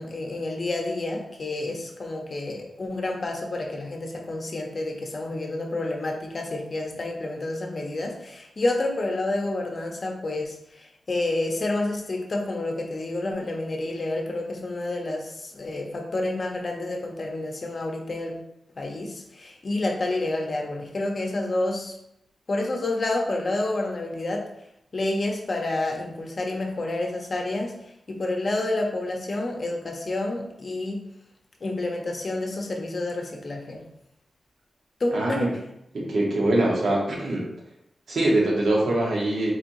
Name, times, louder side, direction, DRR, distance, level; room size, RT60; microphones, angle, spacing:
voice 1, 0.0-10.5 11.1-18.3 18.8-21.9 22.5-24.4 24.9-27.8 28.1-31.0 31.6-33.8 35.0-35.6, left 2 dB, 40° left, 1 dB, 0.6 m, -29 dB
voice 2, 35.1-35.5 35.9-37.5 38.1-39.5, right 1 dB, 75° right, -3 dB, 0.9 m, -23 dB
4.2 x 2.9 x 2.6 m, 0.81 s
wide cardioid pair, 135°, 0 cm